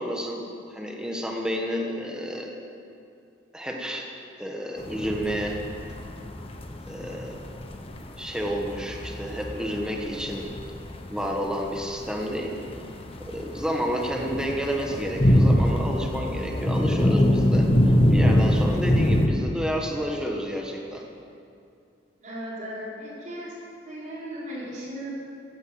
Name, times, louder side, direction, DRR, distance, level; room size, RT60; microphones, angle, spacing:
voice 1, 0.0-2.6 3.5-5.6 6.9-7.4 8.2-10.4 11.1-12.6 13.2-21.0, equal, 5° right, 0 dB, 1.5 m, -30 dB
sound 1, 4.8-19.3, equal, 30° left, 1.2 m, -24 dB
voice 2, 22.2-23.6 23.8-25.1, equal, 40° right, -7 dB, 4.9 m, -36 dB
15.0 x 10.5 x 7.8 m, 2.5 s
head